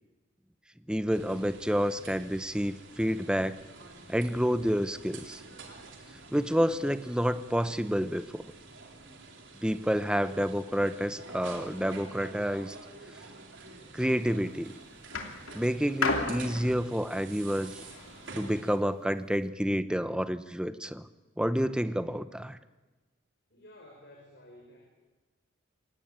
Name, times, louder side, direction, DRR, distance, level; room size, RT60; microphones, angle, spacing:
voice 1, 0.9-3.6 4.1-5.4 6.3-8.4 9.6-12.8 13.9-14.7 15.5-17.8 18.3-21.1 21.4-22.6, equal, 5° right, 12 dB, 0.7 m, -29 dB
sound 1, 1.1-18.8, right 3 dB, 65° right, 3.9 m, -48 dB
sound 2, 14.1-14.5 15.1-18.4 19.2-19.3, left 3 dB, 80° left, 3.0 m, -34 dB
voice 2, 23.5-24.8, left 1 dB, 55° left, -1 dB, 5.7 m, -52 dB
27.0 x 18.0 x 9.0 m, 1.2 s
head